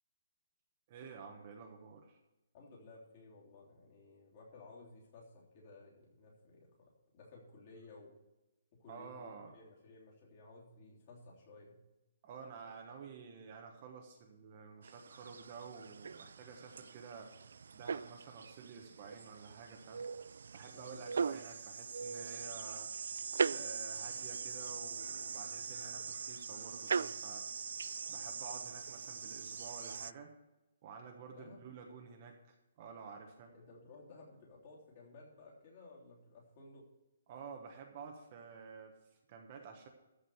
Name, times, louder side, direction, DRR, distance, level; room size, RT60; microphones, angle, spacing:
voice 1, 0.9-2.2 8.9-9.6 12.2-17.3 17.7-20.1 20.5-22.9 23.5-27.4 28.1-30.3 30.8-33.5 37.3-39.9, right 5 dB, 25° right, 2 dB, 1.1 m, -51 dB
voice 2, 2.5-8.1 8.7-11.8 20.7-21.1 31.3-31.7 33.5-36.9, left 3 dB, 30° left, -3 dB, 3.3 m, -56 dB
sound 1, 14.8-30.1, right 5 dB, 70° right, 0.3 m, -41 dB
13.5 x 5.0 x 7.8 m, 0.99 s
hypercardioid pair, 175°, 0 cm